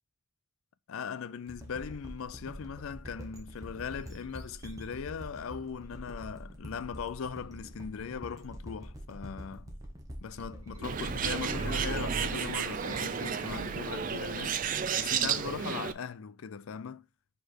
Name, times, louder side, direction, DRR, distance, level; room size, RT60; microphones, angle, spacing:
voice 1, 0.9-9.7 10.2-14.6 15.0-17.1, left 6 dB, 70° left, 0.4 m, -39 dB
sound 1, 1.5-14.1, equal, 15° right, 1.0 m, -45 dB
sound 2, 10.6-14.0 14.4-14.7, right 3 dB, 75° right, 1.0 m, -45 dB
Bird, 10.8-15.9, right 7 dB, 40° right, 0.4 m, -32 dB
4.9 x 4.4 x 4.4 m
head